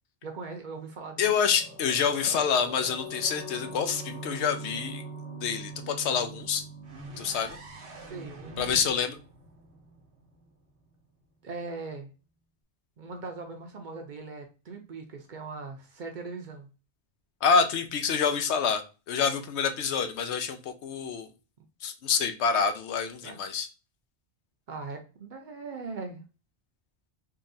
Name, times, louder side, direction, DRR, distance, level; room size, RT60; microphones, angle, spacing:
voice 1, 0.2-1.3 7.9-8.9 11.4-12.1 13.0-16.7 23.2-23.4 24.7-26.2, right 4 dB, 55° right, 4 dB, 0.6 m, -40 dB
voice 2, 1.2-5.0 5.4-6.6 7.2-7.6 8.6-9.2 17.4-21.3 21.8-23.7, left 6 dB, 85° left, 7 dB, 0.9 m, -27 dB
sound 1, 1.4-10.0 10.3-10.4, right 2 dB, 50° left, 1.7 m, -43 dB
sound 2, 6.8-10.7, right 1 dB, 85° right, 1.1 m, -47 dB
3.6 x 2.3 x 2.6 m, 0.32 s
omnidirectional pair, 1.1 m